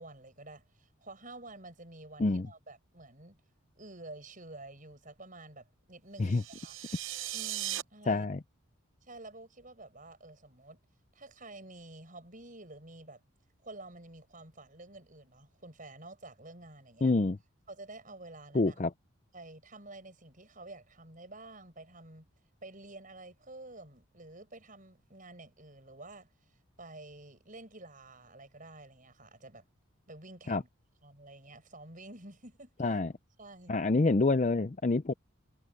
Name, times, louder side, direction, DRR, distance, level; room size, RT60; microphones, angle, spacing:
voice 1, 0.0-3.4 3.8-6.8 7.3-8.3 9.0-10.8 11.1-13.2 13.6-17.1 17.7-18.9 19.3-22.3 22.6-26.3 26.8-29.7 30.1-30.7 31.0-33.0 33.4-33.7, right 2 dB, 40° right, 6.7 m, -50 dB
sound 1, 6.2-7.8, right 14 dB, 65° right, 0.8 m, -38 dB
voice 2, 8.1-8.4 17.0-17.4 18.5-18.9 30.5-30.6 32.8-33.1 33.7-35.1, left 3 dB, 35° left, 0.5 m, -27 dB
head